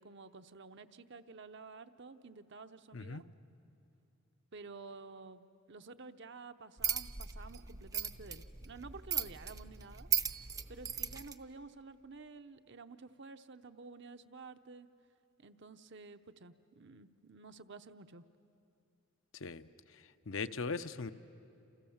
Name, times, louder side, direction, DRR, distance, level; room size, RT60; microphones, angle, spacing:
voice 1, 0.0-3.2 4.5-10.4 10.7-14.9 15.4-18.2, right 4 dB, 55° right, 9 dB, 0.8 m, -51 dB
sound 1, 6.8-11.3, right 8 dB, 15° right, 0.6 m, -37 dB
voice 2, 20.3-21.1, left 4 dB, 65° left, 10 dB, 0.7 m, -39 dB
28.5 x 28.5 x 7.2 m, 2.7 s
head